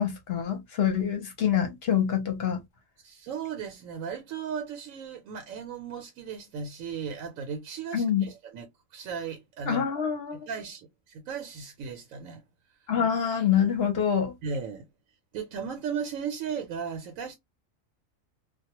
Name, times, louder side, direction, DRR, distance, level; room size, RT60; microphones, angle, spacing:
voice 1, 0.0-2.6 7.9-8.3 9.7-10.4 12.9-14.3, left 8 dB, 55° left, 0.8 m, -26 dB
voice 2, 3.0-9.8 10.5-12.4 14.4-14.9 15.3-17.4, right 6 dB, 80° right, 1.0 m, -36 dB
2.3 x 2.1 x 2.8 m
omnidirectional pair, 1.4 m